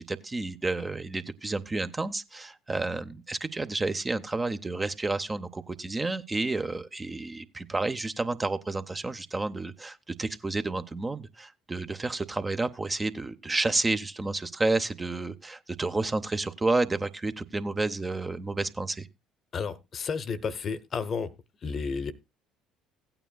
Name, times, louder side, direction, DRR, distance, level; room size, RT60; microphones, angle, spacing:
voice 1, 0.0-19.1, right 3 dB, 20° right, 0.7 m, -30 dB
voice 2, 19.5-21.3 21.6-22.1, left 5 dB, 45° left, 0.8 m, -32 dB
16.0 x 9.0 x 2.2 m
hypercardioid pair, 60°, 0 cm